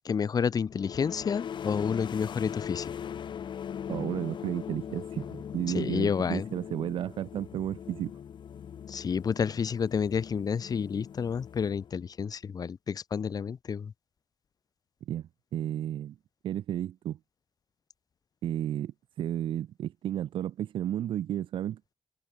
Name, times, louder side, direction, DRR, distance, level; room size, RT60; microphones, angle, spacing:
voice 1, 0.0-2.9 5.7-6.5 8.9-13.9, left 6 dB, 50° left, 1.5 m, -30 dB
sound 1, 0.7-12.2, left 8 dB, 65° left, 5.4 m, -40 dB
voice 2, 3.9-8.1 15.1-16.2 16.4-17.2 18.4-21.9, right 11 dB, 90° right, 2.4 m, -33 dB
open air
cardioid pair, 105°, 9 cm